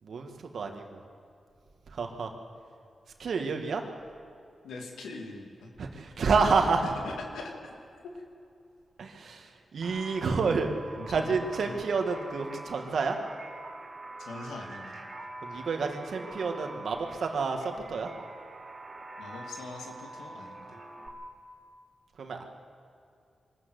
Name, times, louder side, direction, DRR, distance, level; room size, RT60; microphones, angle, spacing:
voice 1, 0.0-1.0 1.9-2.3 3.2-3.8 5.8-6.8 9.0-10.7 11.1-13.2 15.4-18.1 22.2-22.4, right 4 dB, 70° right, 4 dB, 2.1 m, -29 dB
voice 2, 4.6-5.7 6.8-7.7 10.9-11.3 11.6-11.8 14.2-15.0 15.5-15.6 19.2-20.8, left 3 dB, 90° left, 1 dB, 2.4 m, -42 dB
sound 1, 9.8-21.1, right 2 dB, 40° right, 3.1 m, -45 dB
23.5 x 13.5 x 8.2 m, 2.5 s
cardioid pair, 50°, 0 cm